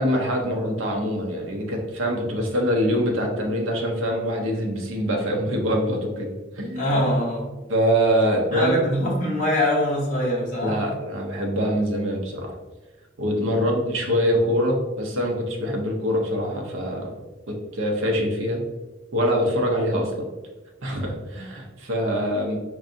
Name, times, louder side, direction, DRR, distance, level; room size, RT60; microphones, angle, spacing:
voice 1, 0.0-6.3 6.6-7.0 7.7-8.8 10.6-12.5 13.2-17.1 17.5-18.6 19.1-20.3 20.8-22.6, equal, 90° right, 1 dB, 0.7 m, -24 dB
voice 2, 6.7-7.5 8.5-10.8, left 1 dB, 40° left, -6 dB, 1.0 m, -23 dB
4.6 x 2.6 x 2.6 m, 1.2 s
head